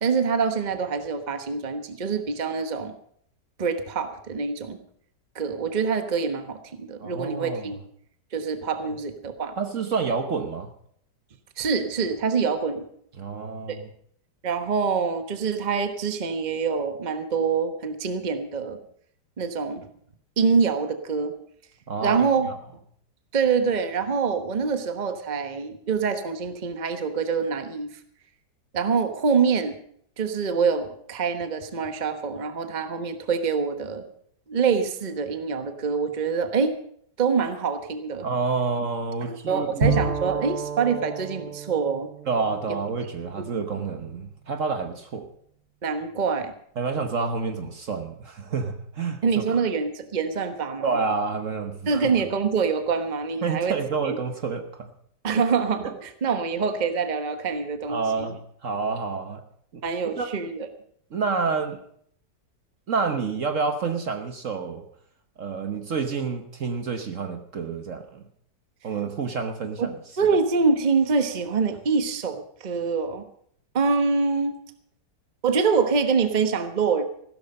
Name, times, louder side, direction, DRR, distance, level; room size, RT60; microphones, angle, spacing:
voice 1, 0.0-2.9 3.6-4.8 5.3-7.8 8.3-9.6 11.6-12.8 13.7-13.8 14.4-18.8 19.4-19.9 20.4-21.3 22.0-22.5 23.3-27.9 28.7-29.8 30.2-34.0 34.5-36.8 37.2-38.3 39.3-42.1 43.4-43.6 45.8-46.5 49.2-50.9 51.9-53.8 54.0-54.2 55.2-58.3 59.8-60.7 69.8-69.9 70.2-73.2 73.7-74.6 75.4-77.1, right 5 dB, 30° right, 8 dB, 1.1 m, -25 dB
voice 2, 7.0-7.7 9.6-10.7 13.2-13.8 21.9-22.6 38.2-39.9 42.3-45.3 46.8-49.4 50.8-52.1 53.4-54.9 55.3-55.4 57.9-59.4 59.7-59.8 60.2-60.3 61.1-61.8 62.9-64.8 65.4-68.2 68.8-69.9, right 4 dB, 50° right, 7 dB, 1.3 m, -28 dB
Bowed string instrument, 39.8-43.5, right 4 dB, 75° right, 3.4 m, -30 dB
15.5 x 13.0 x 5.4 m, 0.65 s
omnidirectional pair, 1.8 m